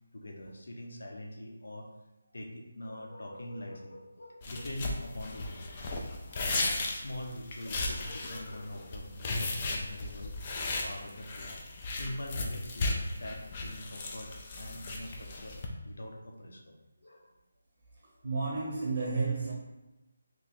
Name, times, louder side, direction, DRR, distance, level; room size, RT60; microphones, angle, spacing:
voice 1, 0.1-1.9 2.3-5.7 6.3-10.3 10.8-16.8 17.0-17.3, left 1 dB, 75° left, 1 dB, 0.7 m, -43 dB
sound 1, 4.4-15.7, left 2 dB, 20° left, 0.4 m, -36 dB
voice 2, 18.2-19.5, right 4 dB, 35° right, -4 dB, 0.7 m, -31 dB
3.0 x 2.6 x 4.2 m, 1.0 s
figure-of-eight pair, 175°, 0 cm